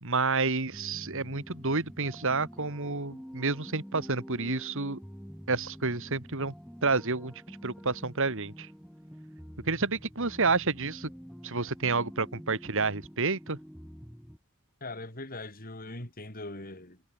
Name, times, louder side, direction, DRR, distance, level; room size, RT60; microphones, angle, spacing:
voice 1, 0.0-5.0 5.5-6.5 6.8-8.7 9.6-11.1 11.4-13.6, right 3 dB, 60° right, 2.5 m, -29 dB
sound 1, 0.7-14.4, equal, ahead, 2.6 m, -47 dB
voice 2, 14.8-17.0, left 2 dB, 40° left, 7.2 m, -41 dB
head